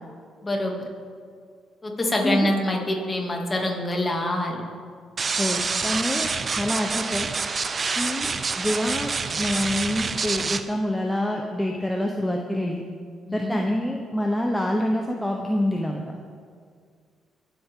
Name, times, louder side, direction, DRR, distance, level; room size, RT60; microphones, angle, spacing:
voice 1, 0.4-0.8 1.8-4.6 13.3-13.6, left 1 dB, 25° left, 0 dB, 2.6 m, -25 dB
sound 1, 5.2-10.6, right 4 dB, 40° right, 0.7 m, -27 dB
voice 2, 5.4-6.3 6.6-7.3 8.0-9.1 9.4-12.8 13.3-16.2, left 1 dB, 5° left, 0 dB, 1.0 m, -26 dB
23.5 x 8.1 x 3.8 m, 2.1 s
cardioid pair, 90°, 0 cm